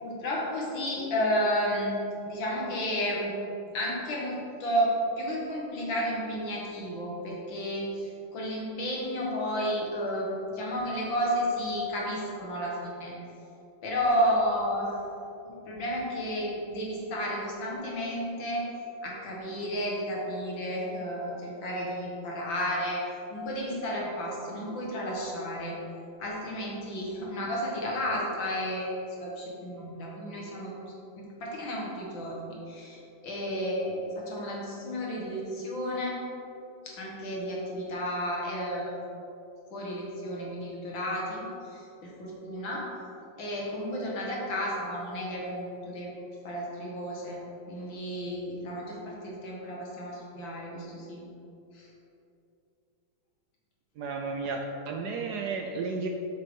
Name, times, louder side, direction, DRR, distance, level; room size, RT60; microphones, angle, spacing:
voice 1, 0.0-2.0 2.3-3.3 3.7-13.1 13.8-15.0 15.5-18.6 19.0-23.0 23.3-25.7 26.2-30.7 31.2-36.3 36.9-38.9 39.7-41.4 41.7-42.9 43.4-46.1 46.4-47.4 47.7-51.2 51.7-51.9, equal, 65° left, -3 dB, 2.1 m, -32 dB
voice 2, 54.0-54.6 54.9-56.1, right 4 dB, 80° right, 2 dB, 0.9 m, -32 dB
8.2 x 6.7 x 3.7 m, 2.8 s
omnidirectional pair, 2.3 m